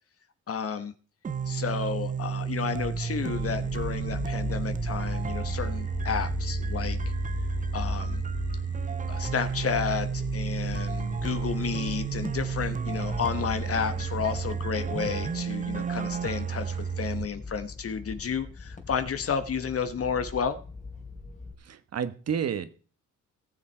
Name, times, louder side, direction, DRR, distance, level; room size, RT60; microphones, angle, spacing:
voice 1, 0.5-0.9 1.5-7.0 7.7-8.2 9.1-20.6, left 6 dB, 50° left, 10 dB, 1.1 m, -31 dB
sound 1, 1.2-17.3, right 7 dB, 25° right, 0.5 m, -32 dB
sound 2, 2.6-21.5, left 3 dB, 25° left, 2.9 m, -43 dB
sound 3, 3.3-14.7, left 3 dB, 10° left, 0.8 m, -37 dB
voice 2, 21.6-22.7, right 7 dB, 55° right, 11 dB, 1.3 m, -30 dB
18.0 x 7.3 x 4.5 m, 0.40 s
cardioid pair, 115°, 31 cm